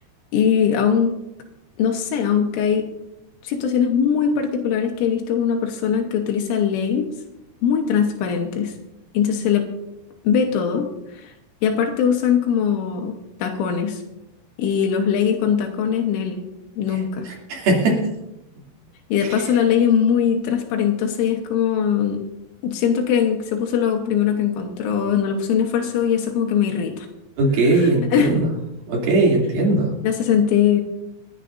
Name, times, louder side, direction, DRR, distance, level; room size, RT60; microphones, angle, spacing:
voice 1, 0.3-1.1 1.8-2.9 3.4-7.1 7.6-8.7 9.2-9.7 10.3-11.3 11.6-13.2 13.4-14.0 14.6-16.4 16.8-17.3 19.1-22.2 22.6-27.1 27.7-28.5 30.0-30.8, left 8 dB, 85° left, 2 dB, 3.6 m, -21 dB
voice 2, 17.3-18.1 19.3-19.4 27.4-28.5 28.9-29.9, right 2 dB, 55° right, -2 dB, 4.3 m, -19 dB
28.5 x 9.9 x 2.6 m, 0.89 s
omnidirectional pair, 5.4 m